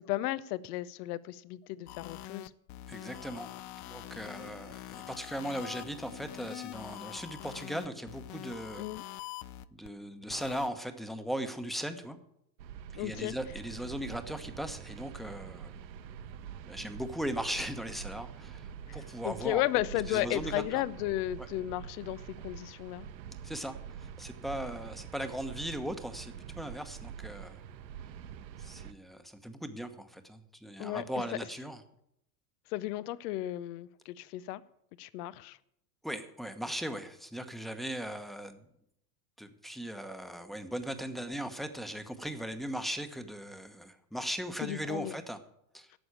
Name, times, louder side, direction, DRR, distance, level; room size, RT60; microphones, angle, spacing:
voice 1, 0.0-2.5 8.8-9.0 13.0-13.4 18.9-23.1 30.8-31.0 32.7-34.6 35.0-35.6 44.6-45.1, left 16 dB, 65° left, 0.8 m, -34 dB
sound 1, 1.9-9.9 10.3-10.7, left 14 dB, 35° left, 0.6 m, -45 dB
voice 2, 2.9-3.5 3.9-8.8 9.7-12.2 12.9-15.8 16.7-19.6 20.1-20.8 21.4-21.5 23.4-27.6 28.6-31.8 36.0-38.6 39.4-45.4 45.7-45.9, equal, ahead, 1.1 m, -38 dB
sound 2, 12.6-28.9, right 8 dB, 90° right, 0.9 m, -45 dB
11.5 x 7.1 x 8.3 m
hypercardioid pair, 105°, 50 cm